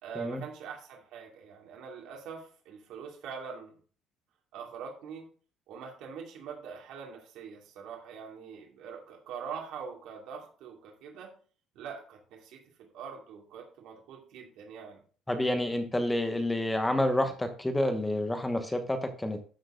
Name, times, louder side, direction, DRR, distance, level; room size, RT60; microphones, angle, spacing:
voice 1, 0.0-3.7 4.5-5.3 5.7-11.3 11.7-15.0, right 6 dB, 70° right, 0 dB, 2.5 m, -43 dB
voice 2, 15.3-19.5, left 1 dB, 10° left, 7 dB, 1.0 m, -29 dB
13.0 x 4.5 x 3.8 m, 0.41 s
cardioid pair, 150°, 0 cm